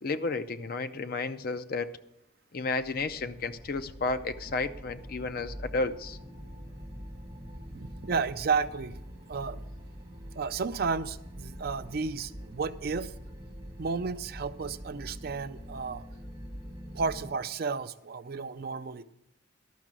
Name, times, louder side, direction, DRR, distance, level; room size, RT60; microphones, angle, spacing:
voice 1, 0.0-1.9 2.5-6.2, left 3 dB, 45° left, 11 dB, 0.5 m, -32 dB
sound 1, 2.8-17.3, equal, 20° right, 1.7 m, -44 dB
voice 2, 7.7-9.0 9.3-9.6 10.3-13.1 13.8-16.0 16.9-19.0, right 5 dB, 50° right, 12 dB, 0.4 m, -32 dB
12.5 x 5.9 x 7.5 m, 0.84 s
head